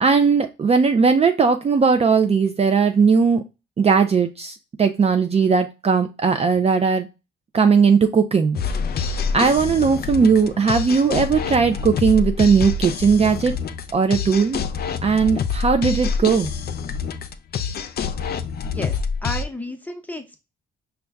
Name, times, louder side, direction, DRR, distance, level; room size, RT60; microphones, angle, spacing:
voice 1, 0.0-3.4 3.8-7.1 7.5-8.6 9.3-13.5 13.9-14.6 15.0-16.5, right 5 dB, 30° right, 7 dB, 0.4 m, -18 dB
Nu Skool X Proto-Beat, 8.5-19.4, left 6 dB, 50° left, 0.5 m, -26 dB
voice 2, 18.6-20.4, left 1 dB, 10° left, 5 dB, 0.8 m, -32 dB
5.1 x 2.3 x 3.4 m, 0.26 s
cardioid pair, 90°, 20 cm